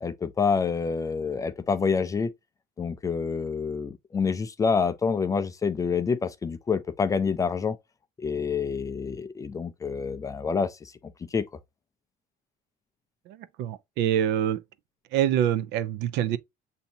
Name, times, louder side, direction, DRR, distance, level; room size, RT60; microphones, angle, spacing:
voice 1, 0.0-2.3 2.8-7.8 8.2-10.9 11.3-11.5, left 5 dB, 20° left, 0.3 m, -27 dB
voice 2, 13.3-14.6 15.1-16.4, right 10 dB, 75° right, 0.5 m, -25 dB
7.0 x 2.7 x 2.6 m
cardioid pair, 150°, 18 cm